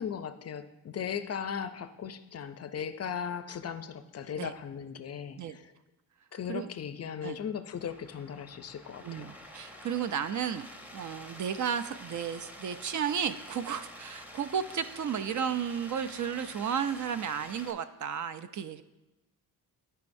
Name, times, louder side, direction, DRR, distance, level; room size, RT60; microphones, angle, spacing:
voice 1, 0.0-5.7 6.3-9.4, left 7 dB, 40° left, 11 dB, 0.5 m, -37 dB
sound 1, 7.7-17.7, left 1 dB, 5° right, 0.8 m, -48 dB
voice 2, 9.0-10.7 10.9-18.8, right 8 dB, 50° right, 12 dB, 0.4 m, -33 dB
14.0 x 4.6 x 2.6 m, 1.0 s
cardioid pair, 110°, 39 cm